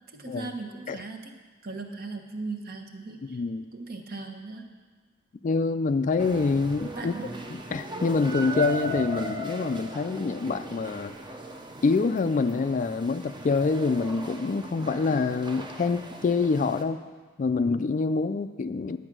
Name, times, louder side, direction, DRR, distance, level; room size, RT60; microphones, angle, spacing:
voice 1, 0.1-1.3 1.6-3.4 3.7-4.7 7.0-7.3, right 3 dB, 50° right, 4 dB, 1.1 m, -38 dB
voice 2, 3.2-3.7 5.4-7.1 7.5-11.1 11.8-17.0 17.4-19.0, left 4 dB, 40° left, 11 dB, 0.3 m, -26 dB
sound 1, 6.2-16.8, right 1 dB, 25° right, 0.8 m, -38 dB
11.0 x 8.8 x 6.1 m, 1.4 s
head